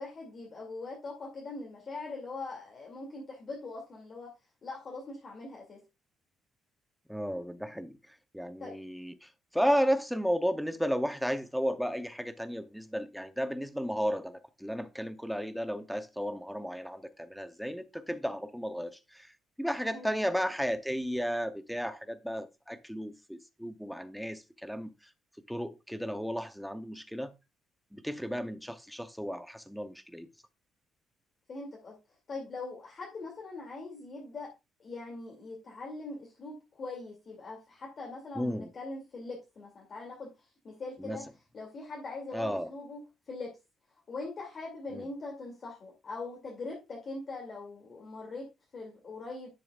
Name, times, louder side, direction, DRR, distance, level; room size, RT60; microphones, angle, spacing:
voice 1, 0.0-4.3 4.6-5.8 8.6-8.8 19.9-20.1 31.5-32.0 32.3-34.5 34.8-41.3 41.5-43.6 44.1-49.5, left 3 dB, 35° left, 2.5 m, -42 dB
voice 2, 7.1-8.0 8.3-19.3 19.6-24.9 25.5-27.3 27.9-30.3 38.4-38.7 41.0-41.2 42.3-42.7 44.9-45.0, equal, ahead, 0.7 m, -33 dB
10.5 x 6.6 x 2.4 m
cardioid pair, 150°, 0 cm